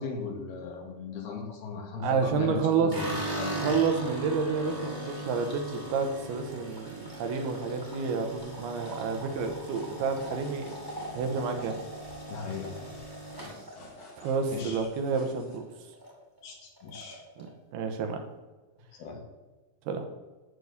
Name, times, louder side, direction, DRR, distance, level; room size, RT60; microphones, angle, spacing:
voice 1, 0.0-3.1 3.4-3.6 12.3-12.9 14.5-14.9 16.4-17.2 19.0-19.2, left 5 dB, 75° left, 1 dB, 3.7 m, -37 dB
voice 2, 2.0-2.9 3.5-10.7 11.1-11.8 14.2-15.7 17.4-17.5 17.7-18.2 19.9-20.0, right 5 dB, 80° right, 5 dB, 3.0 m, -29 dB
sound 1, 2.9-15.2 15.5-16.1 16.4-16.5 16.8-17.5, right 1 dB, 5° right, 1.9 m, -39 dB
sound 2, 8.4-15.6, left 2 dB, 40° left, 2.2 m, -51 dB
11.0 x 4.6 x 8.1 m, 1.2 s
omnidirectional pair, 4.6 m